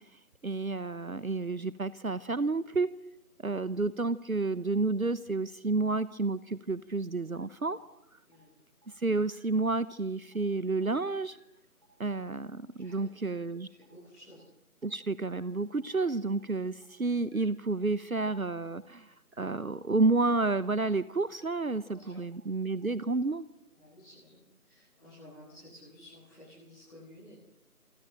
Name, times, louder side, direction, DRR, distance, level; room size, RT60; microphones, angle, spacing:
voice 1, 0.4-3.0 3.4-7.8 9.0-11.4 12.0-13.7 14.8-23.5, right 3 dB, 65° right, 17 dB, 1.1 m, -30 dB
sound 1, 7.8-7.9 8.3-8.4 8.8-8.9 9.3-9.4 9.8-9.9 10.3-10.4 10.8-10.9 11.3-11.4 11.8-11.9 12.3-12.4 12.8-12.9 13.3-13.4 13.8-13.9 14.3-14.4 14.8-14.9 15.3-15.4 15.8-15.9 16.3-16.4 16.8-16.9 17.3-17.4 17.8-17.9 18.3-18.4 18.8-18.9 19.3-19.4 19.8-19.9 20.3-20.4 20.8-20.9 21.3-21.4 21.8-21.9 22.3-22.4 22.8-22.9, right 2 dB, 15° right, 4.7 m, -65 dB
voice 2, 8.2-8.5 12.7-13.1 13.7-14.4 21.9-22.2 23.7-27.3, left 1 dB, ahead, -17 dB, 7.2 m, -54 dB
27.5 x 21.0 x 8.9 m, 0.79 s
figure-of-eight pair, 180°, 45 cm